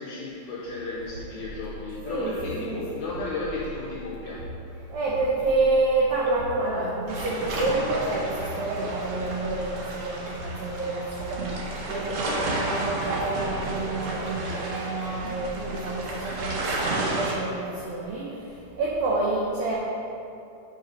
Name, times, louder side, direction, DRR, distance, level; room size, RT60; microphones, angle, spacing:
voice 1, 0.0-4.5 11.8-11.9 12.2-12.6, left 3 dB, 80° left, -4 dB, 1.8 m, -34 dB
sound 1, 0.6-16.6, equal, 55° right, 1.8 m, -41 dB
voice 2, 2.0-2.9 4.9-19.8, right 2 dB, 90° right, -4 dB, 1.5 m, -28 dB
sound 2, 7.1-17.3, right 2 dB, 70° right, 1.6 m, -32 dB
8.3 x 3.9 x 5.2 m, 2.7 s
omnidirectional pair, 4.2 m